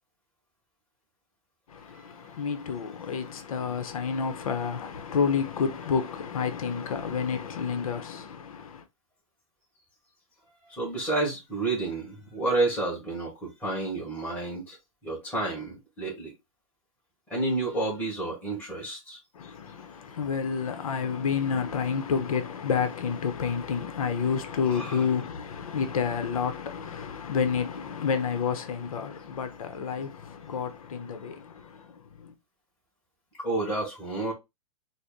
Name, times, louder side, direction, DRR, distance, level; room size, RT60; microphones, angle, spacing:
voice 1, 1.7-8.8 19.3-32.3, left 6 dB, 90° left, 0.7 m, -30 dB
voice 2, 10.7-14.8 15.0-16.3 17.3-19.2 24.7-25.0 33.4-34.3, right 2 dB, 10° left, 1.4 m, -30 dB
4.1 x 2.1 x 3.6 m
hypercardioid pair, 160°, 18 cm